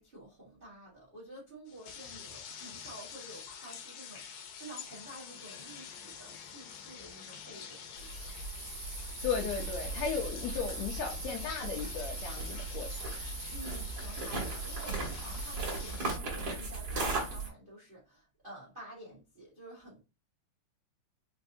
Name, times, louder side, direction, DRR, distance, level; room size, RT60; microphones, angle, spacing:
voice 1, 0.0-8.4 13.5-20.0, right 1 dB, 75° right, 0.5 m, -50 dB
sound 1, 1.7-16.2, left 7 dB, 90° left, 2.4 m, -48 dB
sound 2, 8.0-17.5, right 3 dB, 45° right, 1.5 m, -37 dB
voice 2, 9.2-13.1, left 6 dB, 70° left, 1.7 m, -36 dB
5.2 x 2.6 x 2.7 m
omnidirectional pair, 3.8 m